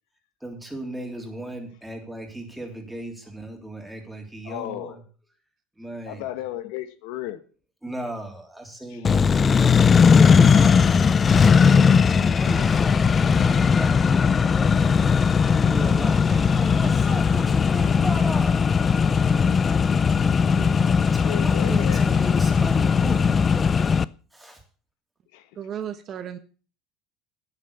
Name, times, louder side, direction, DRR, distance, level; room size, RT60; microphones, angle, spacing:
voice 1, 0.4-5.0 5.7-6.2 7.8-10.8 11.3-11.9 12.2-15.0 15.4-18.6 19.0-20.5 21.1-23.7 24.3-24.6, right 1 dB, 5° right, 3.3 m, -36 dB
voice 2, 4.4-5.0 6.1-7.4 8.9-9.2 21.1-22.0 25.3-25.6, left 14 dB, 75° left, 1.3 m, -34 dB
Accelerating revving vroom, 9.0-24.0, left 6 dB, 25° left, 0.5 m, -18 dB
voice 3, 20.5-21.0 25.5-26.4, right 9 dB, 40° right, 1.2 m, -35 dB
9.7 x 9.6 x 6.9 m
supercardioid pair, 130°, 0 cm